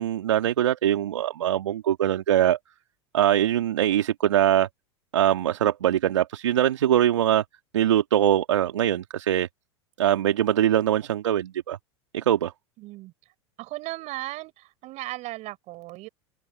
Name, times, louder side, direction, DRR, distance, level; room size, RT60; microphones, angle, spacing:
voice 1, 0.0-2.6 3.1-4.7 5.1-7.4 7.7-9.5 10.0-11.8 12.1-12.5, right 11 dB, 75° right, 2.3 m, -22 dB
voice 2, 12.8-13.1 13.6-16.1, right 19 dB, 50° right, 6.2 m, -36 dB
hypercardioid pair, 85°, 15 cm